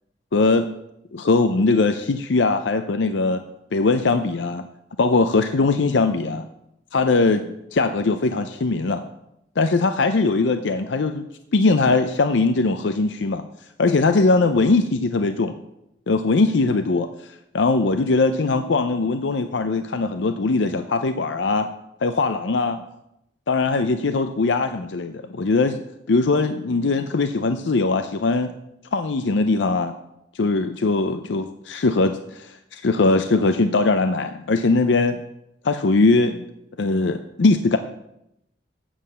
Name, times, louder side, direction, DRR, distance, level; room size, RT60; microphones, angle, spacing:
voice 1, 0.3-0.7 1.1-3.4 3.7-4.7 5.0-6.5 6.9-9.1 9.6-11.3 11.5-13.4 13.8-15.5 16.1-21.7 22.0-22.8 23.5-25.8 26.1-28.5 28.9-30.0 30.3-35.2 35.6-36.5 36.8-37.8, left 3 dB, 75° left, 8 dB, 0.5 m, -20 dB
8.7 x 7.4 x 6.7 m, 0.82 s
head